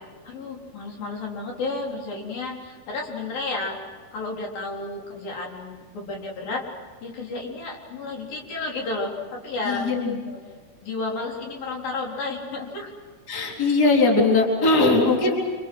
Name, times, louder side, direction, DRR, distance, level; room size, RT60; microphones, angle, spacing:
voice 1, 0.2-3.8 4.1-6.6 7.0-9.1 9.4-9.9 10.8-12.9, left 3 dB, 65° left, -1 dB, 5.7 m, -32 dB
voice 2, 9.6-10.4 13.3-15.4, left 3 dB, 25° left, -1 dB, 4.4 m, -20 dB
28.0 x 27.5 x 6.3 m, 1.5 s
omnidirectional pair, 4.5 m